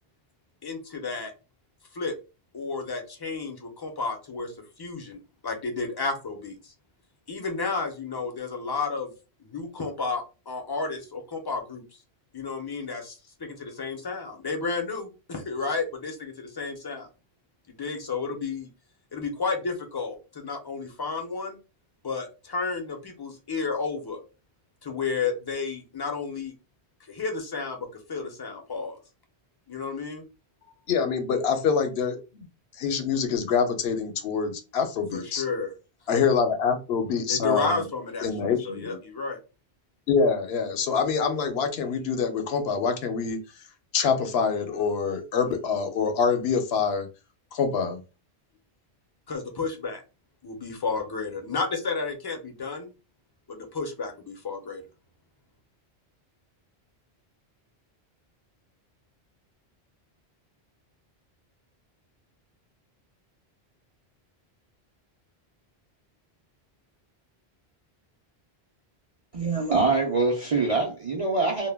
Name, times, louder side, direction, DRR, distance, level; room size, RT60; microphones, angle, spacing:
voice 1, 0.6-1.3 1.9-2.1 2.5-4.5 4.8-6.6 7.3-9.1 9.5-11.8 12.3-13.1 13.4-17.1 17.8-18.7 19.1-21.6 22.0-24.2 24.8-26.5 27.1-29.0 29.7-30.3 35.1-35.7 36.1-36.2 37.3-38.3 38.7-39.4 49.3-50.0 50.4-52.9 53.5-54.8, left 4 dB, 35° left, 0.4 m, -32 dB
voice 2, 30.9-32.5 32.8-35.4 36.1-37.8 38.2-39.0 40.1-43.4 43.9-47.1 47.5-48.0, left 5 dB, 75° left, 0.8 m, -25 dB
voice 3, 69.3-71.7, right 3 dB, 50° right, 0.4 m, -24 dB
2.1 x 2.1 x 3.3 m
omnidirectional pair, 1.1 m